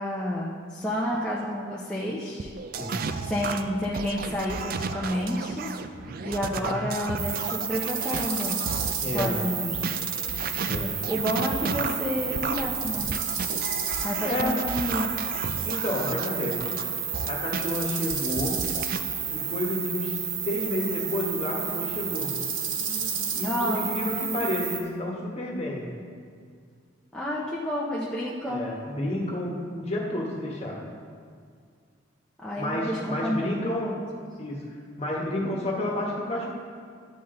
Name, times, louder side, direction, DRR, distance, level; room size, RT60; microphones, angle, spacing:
voice 1, 0.0-2.5 3.3-5.7 6.2-8.6 9.1-9.8 11.1-13.1 14.0-15.1 23.4-24.0 27.1-28.7 32.4-34.0, equal, 5° left, -6 dB, 0.7 m, -30 dB
sound 1, 2.4-9.3 9.7-17.7 18.1-19.0, right 5 dB, 45° right, 0.4 m, -33 dB
sound 2, 7.2-24.8, right 6 dB, 80° right, 1.1 m, -31 dB
voice 2, 9.0-9.4 10.6-11.0 14.2-14.6 15.6-16.7 17.2-18.6 19.3-22.3 23.3-25.9 28.5-30.8 32.6-33.8 34.4-34.6 35.0-36.5, left 1 dB, 30° left, -2 dB, 1.4 m, -30 dB
11.0 x 7.5 x 3.8 m, 2.1 s
head